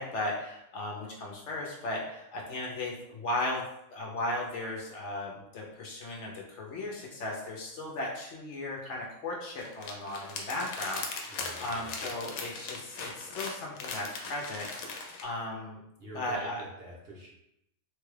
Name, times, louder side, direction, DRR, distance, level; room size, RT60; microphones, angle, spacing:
voice 1, 0.0-3.6 3.9-15.8 16.1-16.7, left 2 dB, 65° left, -2 dB, 0.9 m, -36 dB
sound 1, 9.6-15.2, left 4 dB, 85° left, 1.1 m, -39 dB
voice 2, 11.3-11.9 16.0-17.3, right 1 dB, 50° right, -5 dB, 1.0 m, -46 dB
3.3 x 2.3 x 3.2 m, 0.81 s
omnidirectional pair, 1.4 m